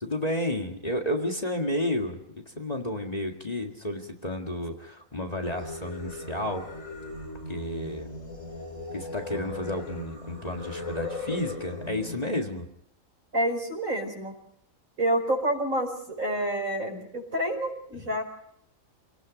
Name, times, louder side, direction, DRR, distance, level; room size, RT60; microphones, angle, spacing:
voice 1, 0.0-2.2 2.5-6.7 7.5-8.1 8.9-12.7 18.0-18.1, left 1 dB, 30° left, 2 dB, 1.9 m, -31 dB
Singing, 5.4-12.2, left 3 dB, 80° left, 3.9 m, -38 dB
voice 2, 13.3-14.3 15.0-18.2, right 1 dB, 90° right, 3 dB, 5.1 m, -28 dB
28.5 x 18.0 x 5.1 m, 0.72 s
omnidirectional pair, 1.4 m